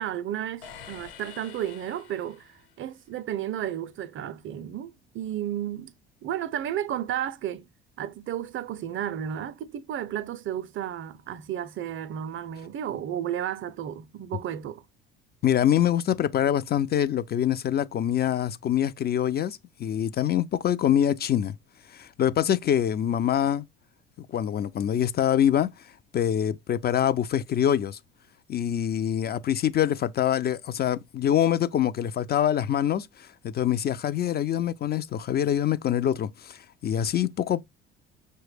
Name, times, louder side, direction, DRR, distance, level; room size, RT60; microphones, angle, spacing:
voice 1, 0.0-5.9 6.2-7.7 8.0-14.8, right 10 dB, 45° right, 0.5 m, -33 dB
sound 1, 0.6-2.9, left 7 dB, 75° left, 1.1 m, -47 dB
voice 2, 15.4-21.5 21.9-23.6 24.3-25.7 26.1-28.0 28.5-37.6, left 10 dB, 35° left, 0.4 m, -25 dB
6.0 x 2.2 x 3.2 m
hypercardioid pair, 60°, 30 cm